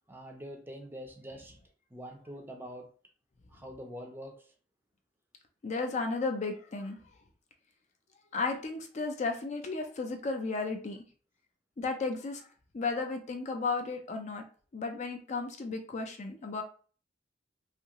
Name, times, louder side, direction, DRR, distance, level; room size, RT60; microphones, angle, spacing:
voice 1, 0.1-1.6 1.9-2.9 3.5-4.5, equal, 10° right, 0.5 m, -45 dB
voice 2, 5.6-7.0 8.3-11.0 11.8-12.5 12.7-14.4 14.7-16.6, left 3 dB, 40° left, 0.4 m, -34 dB
2.7 x 2.4 x 2.8 m
head